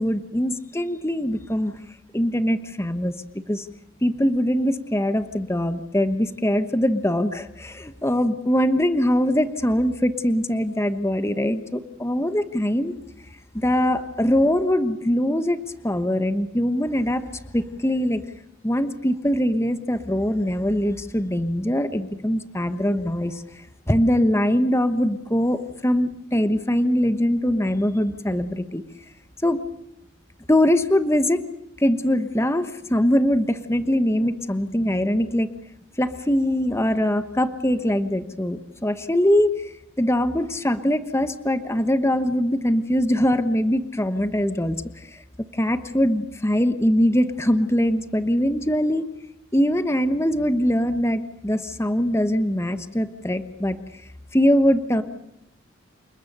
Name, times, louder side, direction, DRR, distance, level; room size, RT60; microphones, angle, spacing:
voice 1, 0.0-1.7 2.1-3.1 3.5-3.7 4.0-12.9 13.5-17.2 17.5-18.2 18.6-23.4 23.9-28.8 29.4-29.6 30.5-31.4 31.8-35.5 36.0-39.7 40.0-44.8 45.1-45.2 45.5-49.1 49.5-53.8 54.3-55.0, equal, 15° left, 10 dB, 1.1 m, -22 dB
29.0 x 20.0 x 6.7 m, 0.85 s
head